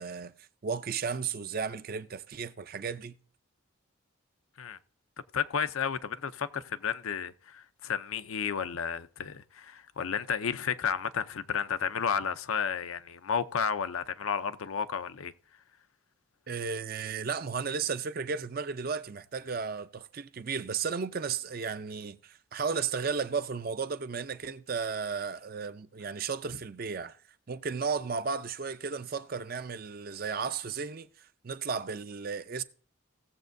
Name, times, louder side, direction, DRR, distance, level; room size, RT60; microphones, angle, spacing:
voice 1, 0.0-3.2 16.5-27.2 27.5-32.6, right 5 dB, 45° right, 0.5 m, -34 dB
voice 2, 5.3-15.3, left 7 dB, 80° left, 0.6 m, -32 dB
17.5 x 7.3 x 2.6 m
head